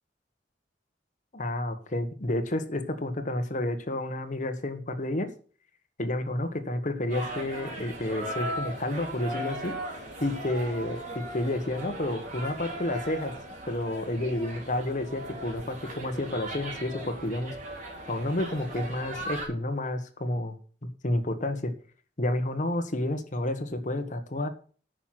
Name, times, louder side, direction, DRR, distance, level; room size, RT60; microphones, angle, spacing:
voice 1, 1.3-5.3 6.0-9.8 10.2-13.3 13.7-17.5 18.1-20.6 21.0-21.7 22.2-24.5, left 1 dB, 45° left, 8 dB, 1.5 m, -30 dB
sound 1, 7.1-19.5, right 1 dB, 45° right, 3.8 m, -38 dB
9.7 x 6.0 x 7.7 m, 0.41 s
head